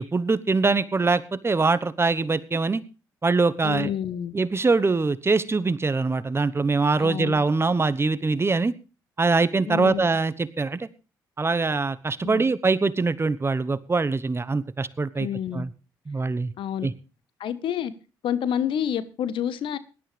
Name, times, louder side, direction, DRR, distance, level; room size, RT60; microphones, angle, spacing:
voice 1, 0.0-2.8 3.2-3.9 4.3-8.7 9.2-10.9 11.4-15.3 15.5-15.7 16.1-16.5 16.8-16.9, right 3 dB, 30° right, 1.1 m, -23 dB
voice 2, 3.6-4.4 7.0-7.4 9.7-10.0 12.2-12.4 15.2-15.6 16.6-16.9 17.4-17.9 18.2-19.8, left 9 dB, 70° left, 1.2 m, -28 dB
18.0 x 12.0 x 3.4 m
supercardioid pair, 60°, 9 cm